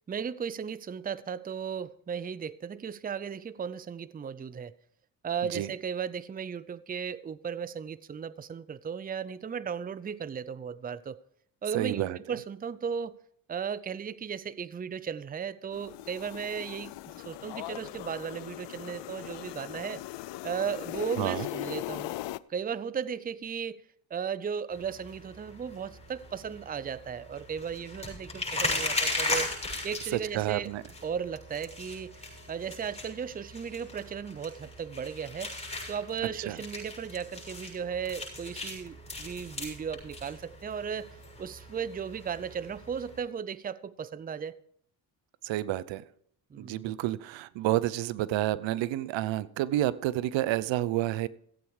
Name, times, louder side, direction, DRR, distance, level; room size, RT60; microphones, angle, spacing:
voice 1, 0.1-4.7 5.2-11.2 11.6-13.2 13.5-20.0 20.4-22.1 22.5-23.8 24.1-29.6 29.8-30.7 31.0-35.5 35.9-44.6 46.5-47.0, right 7 dB, 20° right, 0.6 m, -36 dB
voice 2, 11.7-12.4 21.2-21.5 30.1-30.8 36.4-36.6 45.4-46.0 46.6-51.3, right 14 dB, 75° right, 0.7 m, -30 dB
sound 1, 15.7-22.4, left 17 dB, 70° left, 0.6 m, -39 dB
sound 2, 24.7-43.2, left 2 dB, 15° left, 6.9 m, -38 dB
15.5 x 8.6 x 4.8 m
cardioid pair, 80°, 45 cm